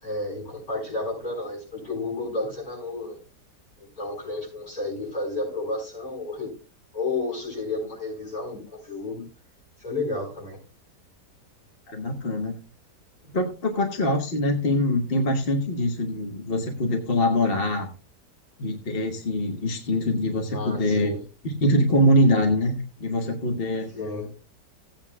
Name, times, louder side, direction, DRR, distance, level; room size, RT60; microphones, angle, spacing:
voice 1, 0.0-3.2 3.8-6.5 6.9-9.2 9.8-10.6 20.5-21.2 23.9-24.3, left 2 dB, 60° left, -3 dB, 6.6 m, -31 dB
voice 2, 11.9-12.5 13.3-17.9 18.6-21.2 21.4-23.9, left 1 dB, 35° left, 3 dB, 1.4 m, -23 dB
16.5 x 8.8 x 2.4 m, 0.34 s
omnidirectional pair, 1.8 m